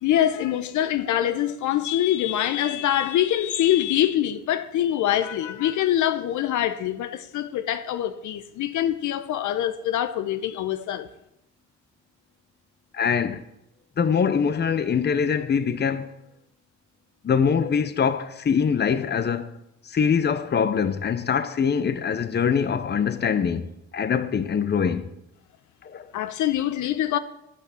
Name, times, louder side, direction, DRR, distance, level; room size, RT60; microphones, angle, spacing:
voice 1, 0.0-11.1 26.1-27.2, left 11 dB, 75° left, 0.7 m, -24 dB
voice 2, 12.9-13.4 14.0-16.1 17.2-19.5 19.9-25.1 25.8-26.1, left 6 dB, 35° left, 0.7 m, -23 dB
11.0 x 6.0 x 7.0 m
cardioid pair, 90°, 30 cm